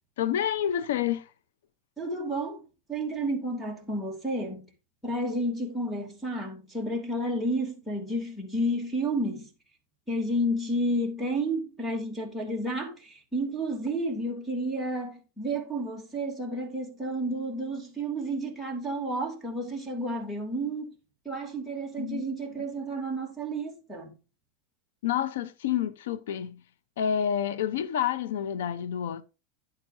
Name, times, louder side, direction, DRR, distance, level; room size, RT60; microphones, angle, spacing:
voice 1, 0.2-1.3 22.0-22.2 25.0-26.6 27.0-29.2, left 9 dB, 90° left, 0.8 m, -28 dB
voice 2, 2.0-4.7 5.0-9.5 10.1-20.9 21.2-24.1, right 1 dB, 5° left, 2.9 m, -31 dB
11.0 x 9.1 x 2.7 m
supercardioid pair, 155°, 0 cm